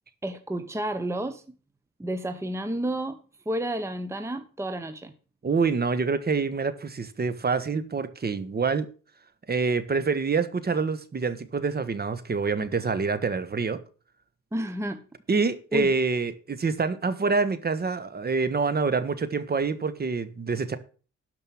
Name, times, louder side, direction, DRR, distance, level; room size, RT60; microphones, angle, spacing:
voice 1, 0.2-1.4 2.0-3.2 3.5-5.1 14.5-15.0 15.7-15.9, right 1 dB, 10° right, 1.1 m, -30 dB
voice 2, 5.4-8.9 9.5-13.8 15.3-20.8, right 4 dB, 30° right, 1.4 m, -26 dB
12.5 x 5.3 x 7.2 m
cardioid pair, 90°, 30 cm